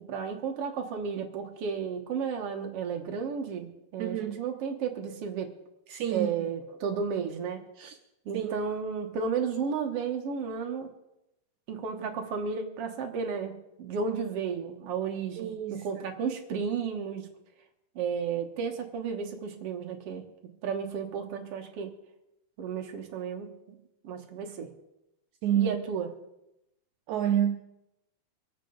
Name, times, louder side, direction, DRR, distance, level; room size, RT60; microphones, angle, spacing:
voice 1, 0.0-5.5 6.1-7.6 8.2-10.9 11.7-13.5 13.8-17.3 17.9-20.2 20.6-21.9 22.6-23.5 24.0-24.7 25.6-26.1, right 6 dB, 60° right, 4 dB, 1.7 m, -33 dB
voice 2, 4.0-4.4 5.9-6.5 7.8-8.0 8.3-8.6 15.4-16.0 25.4-25.8 27.1-27.6, right 10 dB, 80° right, 6 dB, 1.7 m, -29 dB
25.5 x 8.7 x 3.9 m, 0.88 s
omnidirectional pair, 4.1 m